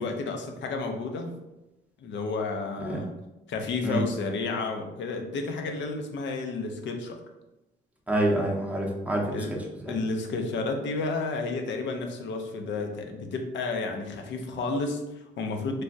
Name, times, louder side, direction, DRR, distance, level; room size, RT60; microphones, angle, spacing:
voice 1, 0.0-1.4 2.0-3.1 3.5-7.2 9.3-9.5 9.9-15.8, left 3 dB, 70° left, 4 dB, 0.5 m, -31 dB
voice 2, 8.1-10.0, right 1 dB, 5° right, -1 dB, 0.6 m, -27 dB
3.2 x 2.2 x 2.6 m, 0.97 s
cardioid pair, 90°, 20 cm